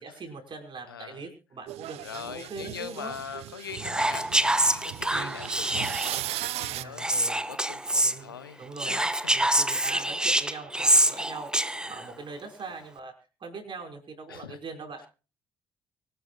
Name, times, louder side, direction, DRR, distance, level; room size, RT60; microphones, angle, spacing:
voice 1, 0.0-3.1 5.1-5.4 6.7-7.4 8.0-9.0 9.3-13.1 13.4-15.1, right 4 dB, 45° right, 5.5 m, -42 dB
voice 2, 0.9-1.2 2.0-8.6 8.8-9.2 14.3-14.6, left 8 dB, 90° left, 0.7 m, -42 dB
sound 1, 1.7-6.8, right 16 dB, 65° right, 0.6 m, -37 dB
Whispering, 3.7-6.3 7.0-8.2 8.8-12.1, right 1 dB, 5° right, 0.8 m, -25 dB
24.5 x 11.0 x 2.5 m
hypercardioid pair, 45°, 11 cm